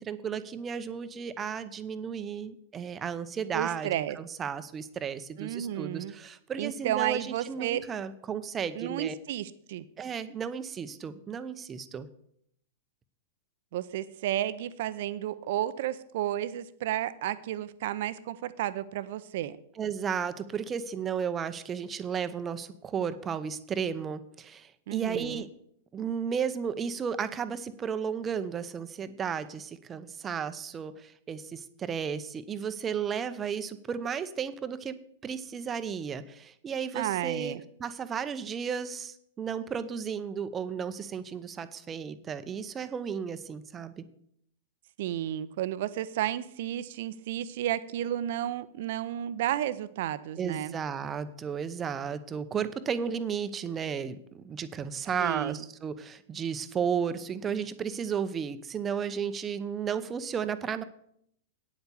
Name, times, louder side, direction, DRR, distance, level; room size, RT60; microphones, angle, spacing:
voice 1, 0.0-9.1 10.0-12.1 19.8-25.5 25.9-35.0 35.2-44.0 50.4-60.8, right 7 dB, 20° right, 12 dB, 0.8 m, -34 dB
voice 2, 3.5-4.2 5.4-6.1 6.6-7.8 8.8-9.8 13.7-19.6 24.9-25.4 36.9-37.6 45.0-50.7 55.2-55.6, right 12 dB, 55° right, 14 dB, 0.7 m, -32 dB
9.2 x 8.0 x 7.0 m, 0.71 s
figure-of-eight pair, 100°, 0 cm